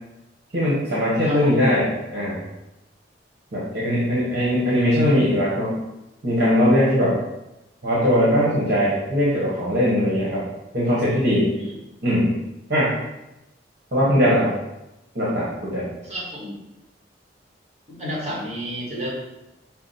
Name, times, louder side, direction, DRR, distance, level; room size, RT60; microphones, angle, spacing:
voice 1, 0.5-2.4 3.5-5.8 6.2-7.2 7.8-10.4 10.7-11.5 12.0-12.3 12.7-12.9 13.9-14.5 15.1-15.9, equal, 55° right, -7 dB, 1.2 m, -20 dB
voice 2, 1.2-1.6 11.5-11.8 16.0-16.6 17.9-19.2, equal, 40° right, -5 dB, 1.3 m, -31 dB
5.9 x 2.1 x 4.1 m, 0.93 s
head